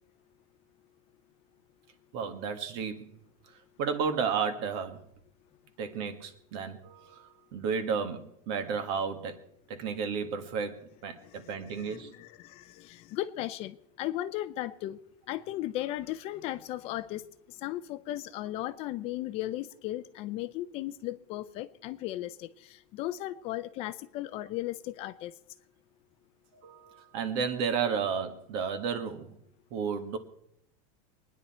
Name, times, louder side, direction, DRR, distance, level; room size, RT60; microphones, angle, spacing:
voice 1, 2.1-3.1 3.8-5.0 5.8-9.4 9.7-12.1 26.5-29.4 29.7-30.2, right 6 dB, 55° right, 1.8 m, -32 dB
voice 2, 11.2-15.0 15.3-17.2 17.6-25.3, left 14 dB, 35° left, 0.5 m, -36 dB
23.0 x 10.0 x 4.3 m
supercardioid pair, 170°, 17 cm